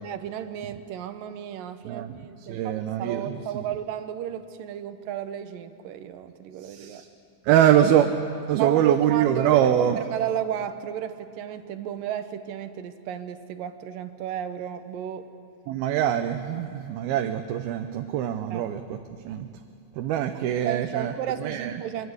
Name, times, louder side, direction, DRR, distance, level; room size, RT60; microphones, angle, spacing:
voice 1, 0.0-7.0 8.6-15.3 18.5-18.7 20.7-22.1, right 10 dB, 70° right, 10 dB, 2.7 m, -33 dB
voice 2, 1.9-3.6 6.6-7.1 7.4-8.1 8.5-10.0 15.7-19.0 19.2-19.5 19.9-21.1 21.4-21.8, right 10 dB, 90° right, 6 dB, 2.8 m, -24 dB
25.5 x 23.0 x 8.1 m, 2.6 s
omnidirectional pair, 4.2 m